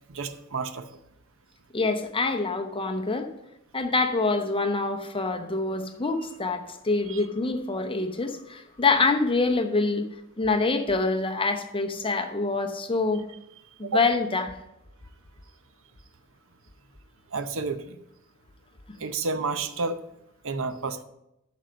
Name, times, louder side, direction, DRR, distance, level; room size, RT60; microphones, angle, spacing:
voice 1, 0.1-0.9 7.1-7.2 13.8-14.0 17.3-18.0 19.0-20.0 20.4-21.0, right 4 dB, 60° right, 10 dB, 0.7 m, -30 dB
voice 2, 1.7-3.3 3.7-10.1 10.4-13.2 13.8-14.5, left 3 dB, 25° left, 6 dB, 0.8 m, -26 dB
9.0 x 6.1 x 5.1 m, 0.86 s
head